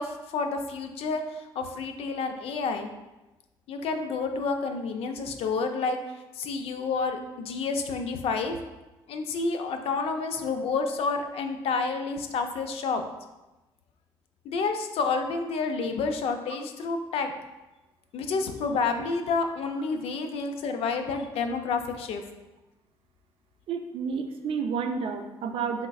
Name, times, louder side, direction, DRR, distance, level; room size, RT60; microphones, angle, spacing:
voice 1, 0.0-2.9 3.7-6.0 6.4-8.6 9.1-13.0 14.5-17.3 18.1-22.2, left 4 dB, 70° left, 6 dB, 0.4 m, -29 dB
voice 2, 23.7-25.9, right 5 dB, 60° right, 5 dB, 0.4 m, -30 dB
3.6 x 3.1 x 2.3 m, 1.1 s
supercardioid pair, 65°, 10 cm